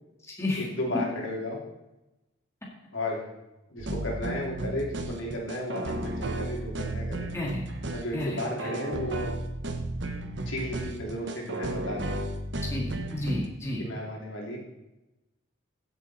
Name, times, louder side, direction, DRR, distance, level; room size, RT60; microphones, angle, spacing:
voice 1, 0.6-1.6 2.9-3.3 3.7-7.3 7.9-9.3 10.5-12.2 13.8-14.6, left 1 dB, 70° left, -2 dB, 3.0 m, -34 dB
sound 1, 3.8-13.5, right 1 dB, 60° right, 1.1 m, -33 dB
voice 2, 8.1-8.7 12.7-13.9, left 1 dB, 15° left, -3 dB, 2.0 m, -32 dB
15.5 x 7.4 x 4.2 m, 0.98 s
head